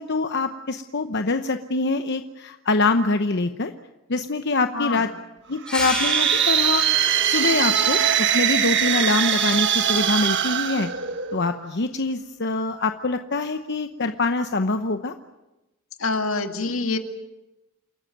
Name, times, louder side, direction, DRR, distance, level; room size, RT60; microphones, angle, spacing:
voice 1, 0.0-3.7 4.1-5.1 5.5-6.8 7.2-10.9 11.3-15.1, left 3 dB, 55° left, 8 dB, 0.9 m, -24 dB
sound 1, 5.6-11.6, right 9 dB, 60° right, 1.3 m, -22 dB
sound 2, 5.7-10.8, equal, 5° left, 5.4 m, -34 dB
voice 2, 16.0-17.0, left 3 dB, 80° left, 6 dB, 2.1 m, -25 dB
28.5 x 14.5 x 9.3 m, 0.99 s
head